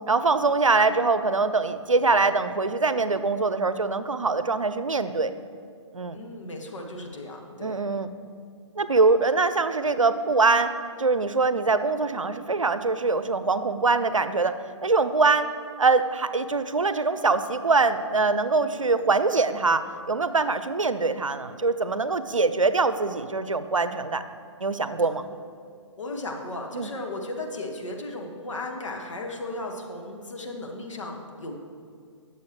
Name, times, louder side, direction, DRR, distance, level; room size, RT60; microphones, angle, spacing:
voice 1, 0.1-5.3 5.9-6.2 7.6-8.1 8.8-10.7 11.0-14.6 14.8-15.5 15.8-24.2 24.6-25.4 26.7-26.9, right 3 dB, 90° right, 12 dB, 0.6 m, -23 dB
voice 2, 6.1-7.7 26.0-31.5, left 2 dB, 75° left, 1 dB, 1.7 m, -35 dB
18.5 x 7.1 x 3.1 m, 2.2 s
figure-of-eight pair, 125°, 16 cm